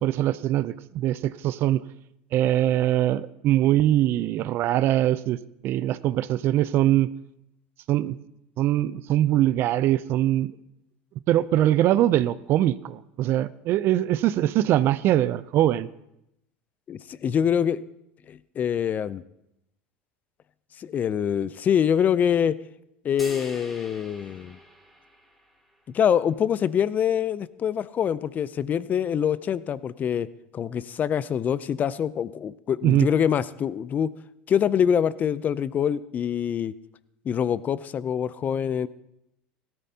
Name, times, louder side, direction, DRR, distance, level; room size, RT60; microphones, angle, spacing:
voice 1, 0.0-1.8 2.3-7.1 7.9-8.2 8.6-10.5 11.3-15.9 32.8-33.1, right 13 dB, 50° right, 16 dB, 0.5 m, -22 dB
voice 2, 16.9-17.8 18.3-19.2 20.8-22.6 23.0-24.6 25.9-30.3 30.5-34.1 34.5-36.7 37.2-38.9, left 8 dB, 35° left, 18 dB, 0.5 m, -25 dB
sound 1, 23.2-25.7, equal, ahead, 2.9 m, -44 dB
16.5 x 13.5 x 2.8 m, 0.82 s
supercardioid pair, 100°, 5 cm